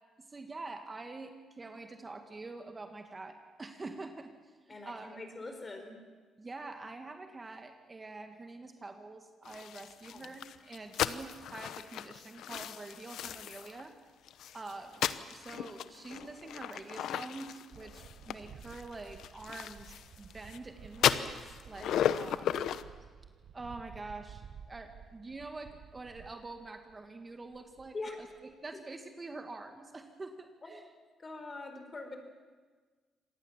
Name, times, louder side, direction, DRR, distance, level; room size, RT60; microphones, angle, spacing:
voice 1, 0.3-5.2 6.4-13.9 14.5-15.1 15.3-22.7 23.5-30.9, right 3 dB, 25° right, 6 dB, 1.8 m, -46 dB
voice 2, 4.7-6.0 10.1-10.3 27.9-28.2 30.6-30.7 31.2-32.2, left 3 dB, 30° left, 6 dB, 4.7 m, -43 dB
sound 1, 9.4-13.8 14.3-20.6 20.9-22.8, left 10 dB, 75° left, 0.8 m, -35 dB
sound 2, 17.7-27.1 27.4-28.7, right 7 dB, 65° right, 1.1 m, -53 dB
26.0 x 19.0 x 7.4 m, 1.4 s
cardioid pair, 90°, 0 cm